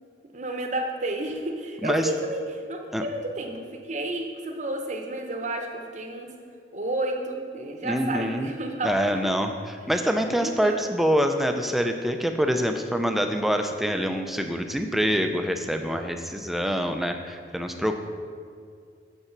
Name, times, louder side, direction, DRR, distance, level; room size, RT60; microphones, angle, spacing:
voice 1, 0.3-6.3 6.7-9.3 10.2-10.9, right 1 dB, 40° right, 3 dB, 0.8 m, -31 dB
voice 2, 7.8-8.5 8.8-18.0, equal, ahead, 5 dB, 0.4 m, -25 dB
6.9 x 5.5 x 5.9 m, 2.2 s
head